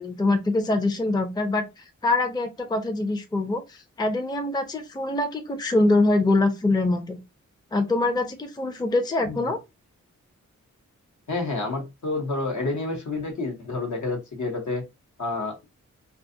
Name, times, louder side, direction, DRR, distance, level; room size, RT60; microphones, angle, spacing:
voice 1, 0.0-7.2 7.7-9.6, left 2 dB, 15° left, 0.5 m, -24 dB
voice 2, 11.3-14.8 15.2-15.6, left 3 dB, 70° left, 1.0 m, -29 dB
2.5 x 2.3 x 2.6 m
wide cardioid pair, 65°, 31 cm